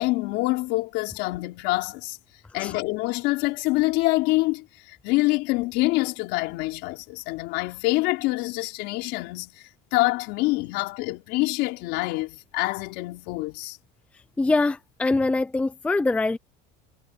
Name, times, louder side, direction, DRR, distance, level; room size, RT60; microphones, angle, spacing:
voice 1, 0.0-2.2 2.5-9.6 9.9-13.8, left 21 dB, 60° left, 4.6 m, -26 dB
voice 2, 14.4-16.4, left 3 dB, 5° left, 0.5 m, -23 dB
cardioid pair, 165°, 20 cm